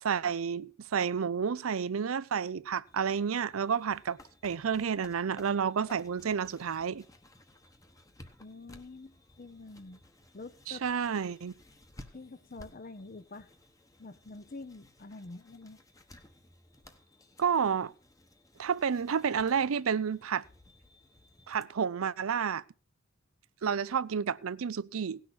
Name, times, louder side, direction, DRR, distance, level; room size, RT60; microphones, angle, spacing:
voice 1, 0.0-7.0 10.7-11.5 17.4-17.9 18.6-20.4 21.5-22.6 23.6-25.2, right 7 dB, 85° right, 0.5 m, -30 dB
sound 1, 2.9-21.6, left 1 dB, 15° left, 1.0 m, -57 dB
voice 2, 8.4-10.0 10.3-10.8 12.1-13.5 14.0-15.8, left 3 dB, 40° left, 0.7 m, -46 dB
17.0 x 6.4 x 6.0 m
head